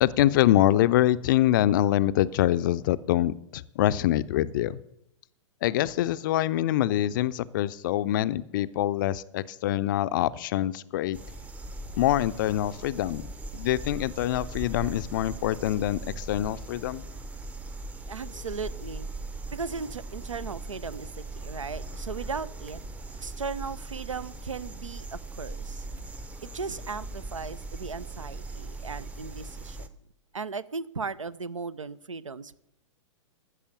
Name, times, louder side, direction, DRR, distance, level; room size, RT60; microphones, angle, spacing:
voice 1, 0.0-4.8 5.6-11.2 12.0-13.2 13.5-17.0, left 13 dB, 40° left, 16 dB, 0.5 m, -25 dB
sound 1, 11.1-29.9, right 2 dB, 10° right, 0.7 m, -39 dB
voice 2, 18.1-19.1 19.5-22.8 23.2-25.9 26.4-29.9 30.3-32.6, right 4 dB, 75° right, 19 dB, 0.6 m, -37 dB
14.0 x 6.7 x 7.2 m, 0.83 s
figure-of-eight pair, 105°, 16 cm